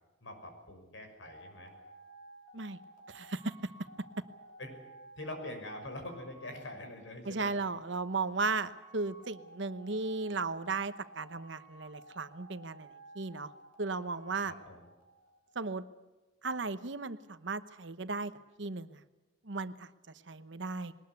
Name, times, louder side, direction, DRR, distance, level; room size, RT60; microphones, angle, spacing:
voice 1, 0.2-1.7 4.6-4.8 5.2-7.5 14.4-14.9, left 1 dB, 80° left, 5 dB, 6.3 m, -44 dB
sound 1, 1.2-15.6, right 1 dB, 45° left, 3.1 m, -55 dB
voice 2, 3.1-3.7 7.2-13.5 13.8-14.5 15.5-15.8 16.4-18.3 18.6-19.0 19.4-19.9 20.3-20.9, right 3 dB, 70° right, 12 dB, 1.0 m, -36 dB
21.5 x 19.5 x 8.3 m, 1.1 s
head